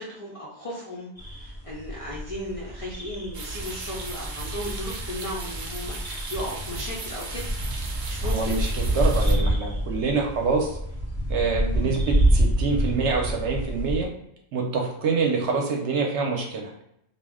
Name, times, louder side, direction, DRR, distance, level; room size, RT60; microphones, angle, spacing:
voice 1, 0.0-7.4 8.1-8.6 11.7-12.0, equal, 55° left, -5 dB, 0.3 m, -35 dB
sound 1, 1.2-14.0, right 1 dB, ahead, 0.7 m, -27 dB
sound 2, 3.3-9.4, right 3 dB, 85° right, 0.4 m, -38 dB
voice 2, 8.2-8.7 8.9-10.8 11.3-14.1 14.5-16.7, right 4 dB, 65° right, 0 dB, 0.8 m, -26 dB
2.4 x 2.1 x 3.4 m, 0.79 s
omnidirectional pair, 1.4 m